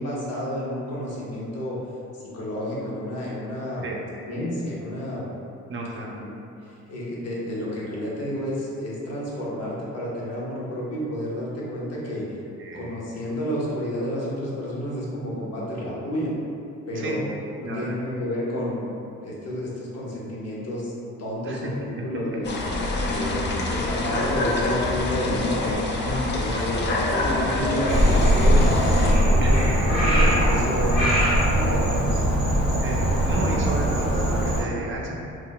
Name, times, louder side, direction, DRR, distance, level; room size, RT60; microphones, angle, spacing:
voice 1, 0.0-1.8 2.2-3.9 4.3-5.2 5.9-6.3 6.6-12.3 12.7-16.3 16.9-18.9 19.2-20.9 21.2-22.5 23.0-25.9 26.3-32.4 35.0-35.1, equal, 55° left, -5 dB, 0.8 m, -30 dB
voice 2, 5.7-6.2 12.6-12.9 16.9-17.2 17.6-17.9 21.4-21.6 25.6-26.8 29.4-29.6 31.0-31.1 32.8-35.1, right 2 dB, 45° right, -2 dB, 0.5 m, -32 dB
sound 1, 22.4-29.1, left 2 dB, 40° left, 0.4 m, -26 dB
Frog, 27.9-34.6, equal, 70° left, 1.1 m, -20 dB
2.4 x 2.1 x 3.7 m, 2.6 s
cardioid pair, 90°, 30 cm